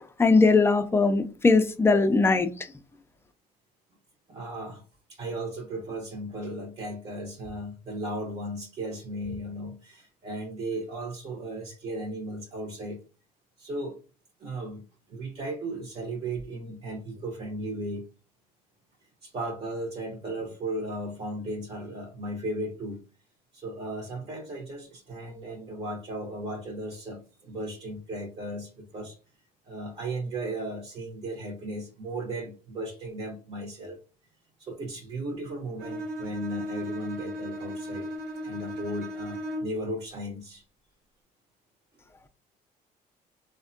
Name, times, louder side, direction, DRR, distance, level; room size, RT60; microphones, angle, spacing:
voice 1, 0.2-2.5, left 3 dB, 15° left, 8 dB, 0.4 m, -20 dB
voice 2, 4.3-4.8 5.1-13.0 13.6-14.0 14.4-14.8 15.1-18.0 19.2-23.0 23.5-29.2 29.6-34.0 34.6-38.1 38.4-40.6, right 1 dB, 35° right, 0 dB, 0.7 m, -36 dB
Bowed string instrument, 35.8-39.9, equal, 85° right, 1.0 m, -36 dB
3.4 x 2.1 x 2.5 m, 0.34 s
cardioid pair, 110°, 17 cm